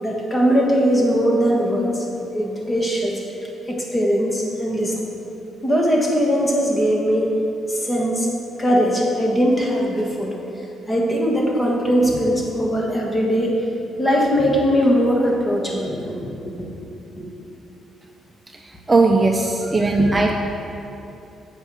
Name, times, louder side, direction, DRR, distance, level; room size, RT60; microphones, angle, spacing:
voice 1, 0.0-1.9 2.3-3.2 3.7-5.0 5.6-7.3 7.7-8.3 8.6-10.3 10.9-13.5 14.0-16.7 17.2-17.3, equal, 20° left, -2 dB, 1.5 m, -20 dB
voice 2, 18.5-20.3, right 3 dB, 20° right, 2 dB, 0.5 m, -18 dB
8.1 x 5.2 x 4.9 m, 2.9 s
cardioid pair, 90°, 0 cm